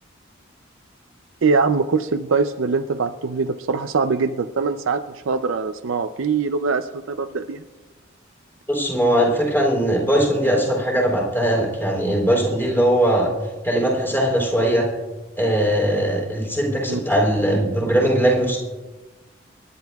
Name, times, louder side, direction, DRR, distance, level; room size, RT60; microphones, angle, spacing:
voice 1, 1.4-7.6 16.9-17.0, right 4 dB, 80° right, 8 dB, 0.5 m, -22 dB
voice 2, 8.7-13.3 13.6-14.9 15.4-18.6, right 1 dB, 10° left, -3 dB, 3.6 m, -20 dB
27.0 x 11.0 x 2.3 m, 1.2 s
head